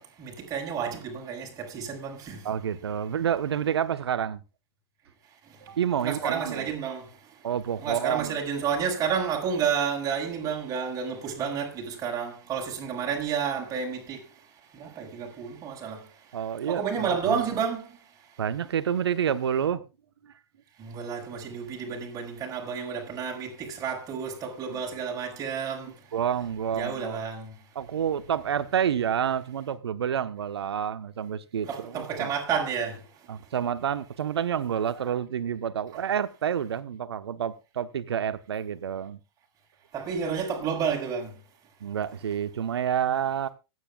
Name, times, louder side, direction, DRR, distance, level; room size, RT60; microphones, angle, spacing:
voice 1, 0.0-2.5 6.0-7.1 7.8-14.2 14.7-16.1 16.7-17.9 20.8-25.9 26.7-27.5 31.7-33.0 39.9-41.3, right 7 dB, 25° right, 6.2 m, -30 dB
voice 2, 2.4-4.4 5.6-6.7 7.4-8.3 16.3-17.4 18.4-19.8 20.2-20.3 24.7-24.8 26.1-27.2 27.7-32.3 33.3-39.2 41.8-43.5, right 8 dB, 75° right, 1.2 m, -29 dB
25.0 x 9.6 x 2.4 m
hypercardioid pair, 110°, 14 cm